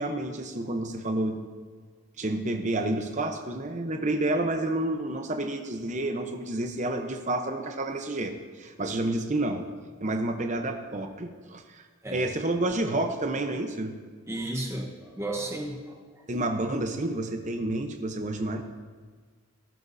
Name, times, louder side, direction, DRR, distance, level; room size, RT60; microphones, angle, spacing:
voice 1, 0.0-1.4 2.2-9.7 10.0-11.8 12.1-13.9 16.3-18.6, right 1 dB, 35° right, 5 dB, 0.9 m, -29 dB
voice 2, 14.3-15.9, right 1 dB, 10° right, 2 dB, 1.1 m, -33 dB
18.5 x 10.5 x 2.7 m, 1.5 s
head